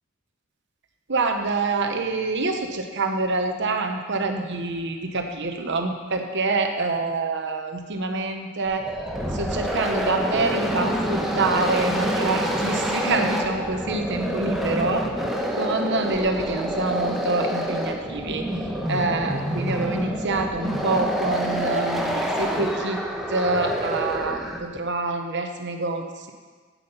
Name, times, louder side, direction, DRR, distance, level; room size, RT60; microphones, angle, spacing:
voice 1, 1.1-8.9 9.3-15.1 15.6-18.5 18.9-23.0 23.3-26.3, right 3 dB, 60° right, 4 dB, 1.1 m, -26 dB
sound 1, 8.7-24.8, equal, ahead, 1.1 m, -27 dB
9.8 x 8.7 x 5.6 m, 1.5 s
head